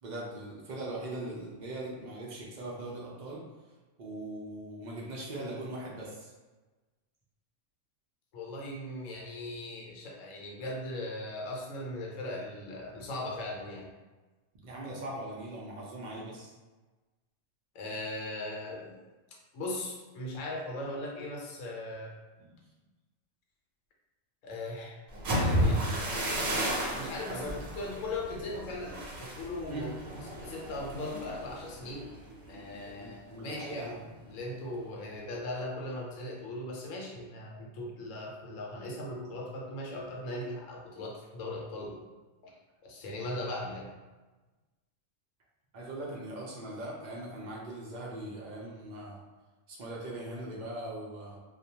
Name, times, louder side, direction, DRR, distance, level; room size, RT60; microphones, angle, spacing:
voice 1, 0.0-3.4 4.0-6.3 14.6-16.5 22.4-22.6 27.3-27.5 29.7-29.9 33.0-34.0 45.7-49.2 49.7-51.4, right 1 dB, 60° right, -4 dB, 0.5 m, -40 dB
voice 2, 8.3-13.9 17.7-19.0 19.5-22.1 24.4-25.0 25.3-25.8 26.9-27.5 27.8-32.1 32.5-34.0 34.3-42.0 42.4-42.5 42.8-43.9, left 1 dB, 80° left, -1 dB, 1.0 m, -39 dB
sound 1, 25.1-32.9 33.3-33.6 34.0-34.4, equal, 85° right, 1.0 m, -33 dB
2.3 x 2.1 x 2.7 m, 1.2 s
omnidirectional pair, 1.3 m